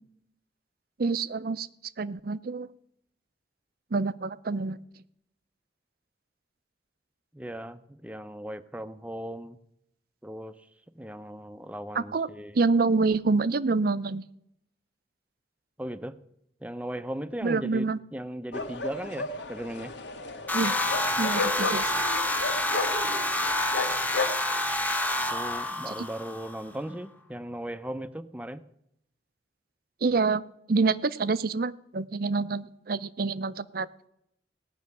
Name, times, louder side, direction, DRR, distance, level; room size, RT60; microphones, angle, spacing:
voice 1, 1.0-1.7 2.0-2.7 3.9-4.8 11.9-12.3 12.5-14.2 17.4-18.0 20.5-20.7 21.2-21.9 25.9-26.0 30.0-30.4 30.7-33.9, right 4 dB, 55° right, 16 dB, 0.5 m, -27 dB
voice 2, 7.3-9.6 10.2-10.7 11.0-12.6 15.8-16.2 16.6-19.9 25.3-28.6, right 1 dB, 10° right, 12 dB, 0.6 m, -37 dB
sound 1, 18.5-24.3, left 3 dB, 75° left, 1.6 m, -34 dB
sound 2, 20.5-26.6, left 1 dB, 10° left, 0.9 m, -28 dB
17.5 x 6.3 x 9.5 m, 0.77 s
head